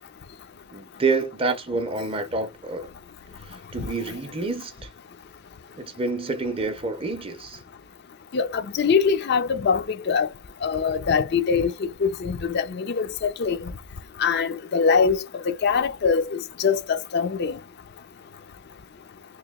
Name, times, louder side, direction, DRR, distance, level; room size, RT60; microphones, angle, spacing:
voice 1, 0.7-2.9 3.4-4.9 5.8-7.6, right 3 dB, 25° right, 0.6 m, -28 dB
voice 2, 8.3-10.3 10.6-13.7 14.2-15.2 15.5-17.5, left 5 dB, 45° left, 0.4 m, -23 dB
2.9 x 2.6 x 3.6 m
head